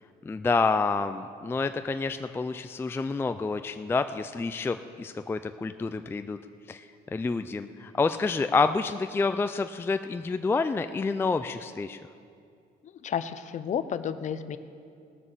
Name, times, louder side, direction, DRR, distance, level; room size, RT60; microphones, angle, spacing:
voice 1, 0.2-6.4 6.7-12.0, left 4 dB, 15° left, 9 dB, 0.3 m, -28 dB
voice 2, 13.0-14.6, left 8 dB, 45° left, 12 dB, 0.7 m, -31 dB
18.0 x 7.0 x 6.7 m, 2.4 s
cardioid pair, 110°, 17 cm